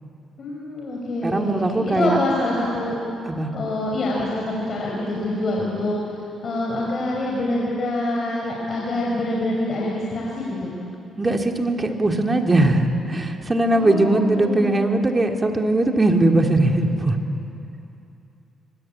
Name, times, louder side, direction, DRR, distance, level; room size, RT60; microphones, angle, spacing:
voice 1, 0.4-3.0 3.5-10.7 13.7-14.8, left 1 dB, 50° left, -3 dB, 5.5 m, -26 dB
voice 2, 1.2-2.2 3.2-3.5 11.2-17.2, right 2 dB, 20° right, 3 dB, 2.6 m, -20 dB
25.0 x 24.5 x 8.9 m, 2.7 s
cardioid pair, 90°, 0 cm